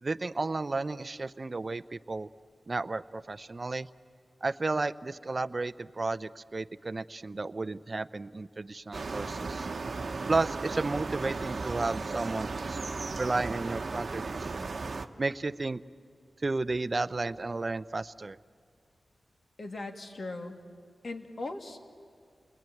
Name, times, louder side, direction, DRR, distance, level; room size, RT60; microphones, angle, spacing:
voice 1, 0.0-2.3 2.7-3.9 4.4-9.7 10.3-12.8 13.2-14.7 15.2-15.8 16.4-18.4, right 3 dB, 35° right, 14 dB, 0.6 m, -33 dB
sound 1, 8.9-15.1, right 4 dB, 50° right, 1.1 m, -35 dB
voice 2, 19.6-20.6 21.0-21.8, left 2 dB, 50° left, 5 dB, 2.2 m, -39 dB
29.5 x 21.0 x 9.2 m, 2.2 s
wide cardioid pair, 110°, 0 cm